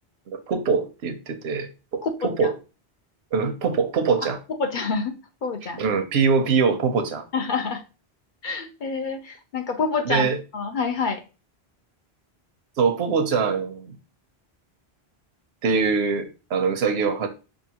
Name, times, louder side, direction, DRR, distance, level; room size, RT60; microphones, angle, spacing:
voice 1, 0.3-2.5 3.3-4.4 5.8-7.2 10.1-10.4 12.8-14.0 15.6-17.3, right 5 dB, 80° right, 0.9 m, -23 dB
voice 2, 2.0-2.5 4.6-5.1 5.4-5.8 7.3-7.8 8.4-10.3 10.5-11.2, left 4 dB, 55° left, 0.7 m, -27 dB
5.5 x 2.6 x 2.8 m
omnidirectional pair, 1.1 m